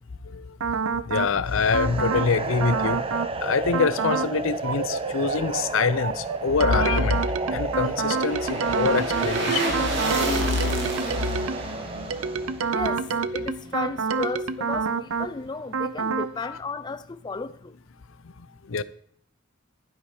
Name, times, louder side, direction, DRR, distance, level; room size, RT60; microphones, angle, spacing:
sound 1, 0.6-1.3 1.7-2.3 2.6-3.3 3.7-4.3 4.6-11.7 12.1-15.3 15.7-16.3, right 5 dB, 85° right, 0.6 m, -28 dB
voice 1, 1.1-3.0 3.4-7.2 7.5-9.8 10.7-10.8 16.4-16.6 18.7-18.8, left 5 dB, 70° left, 0.6 m, -25 dB
sound 2, 1.5-12.6, right 3 dB, 25° right, 0.7 m, -32 dB
sound 3, 6.7-13.9 14.2-14.3, right 2 dB, 60° right, 2.5 m, -31 dB
voice 2, 12.7-17.8, left 3 dB, 20° left, 0.4 m, -34 dB
11.5 x 9.8 x 4.9 m
head